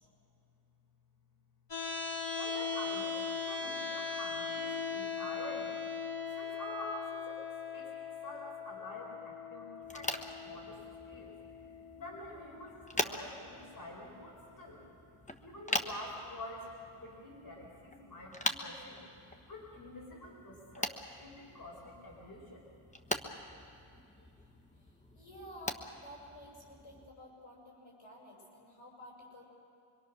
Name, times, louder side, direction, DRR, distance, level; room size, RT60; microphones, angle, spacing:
sound 1, 1.7-13.7, left 5 dB, 60° left, 2.4 m, -40 dB
voice 1, 2.3-5.8 6.3-10.8 11.0-14.8 15.4-16.7 17.0-19.1 19.5-22.6 24.2-24.3, left 1 dB, 45° left, -2 dB, 5.0 m, -47 dB
sound 2, 9.8-27.1, left 1 dB, 15° left, 1.1 m, -42 dB
voice 2, 24.8-29.5, equal, 75° left, -1 dB, 6.5 m, -52 dB
25.5 x 24.0 x 6.3 m, 2.7 s
wide cardioid pair, 110°, 50 cm